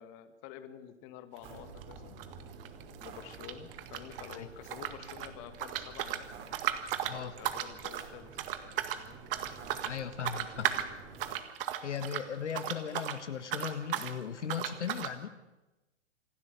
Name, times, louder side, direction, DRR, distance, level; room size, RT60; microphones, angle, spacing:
voice 1, 0.0-2.2 3.0-6.3 7.0-9.2, left 10 dB, 35° left, 9 dB, 1.9 m, -49 dB
sound 1, 1.4-11.4, right 4 dB, 30° right, 4.1 m, -50 dB
sound 2, 1.4-1.6 1.8-4.4 4.7-13.2 13.4-14.1 14.5-15.1, right 11 dB, 50° right, 1.9 m, -36 dB
voice 2, 9.8-10.8 11.8-15.4, left 8 dB, 70° left, 10 dB, 1.6 m, -37 dB
26.5 x 12.0 x 8.2 m, 1.1 s
hypercardioid pair, 125°, 36 cm